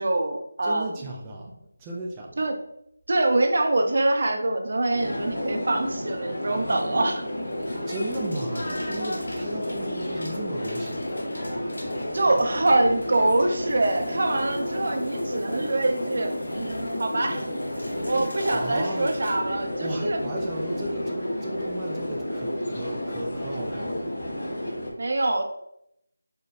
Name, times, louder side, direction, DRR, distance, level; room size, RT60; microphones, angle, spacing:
voice 1, 0.0-0.9 2.4-2.6 3.1-7.3 12.1-17.5 18.0-20.2 25.0-25.4, right 2 dB, 55° right, 4 dB, 0.7 m, -24 dB
voice 2, 0.6-2.4 7.8-11.2 18.5-19.1 19.8-24.1, right 1 dB, 15° right, -2 dB, 0.5 m, -35 dB
sound 1, 4.9-24.9, left 1 dB, 55° left, 1.4 m, -31 dB
sound 2, 7.4-19.4, left 1 dB, 75° left, 1.3 m, -45 dB
5.0 x 2.2 x 4.2 m, 0.76 s
figure-of-eight pair, 170°, 0 cm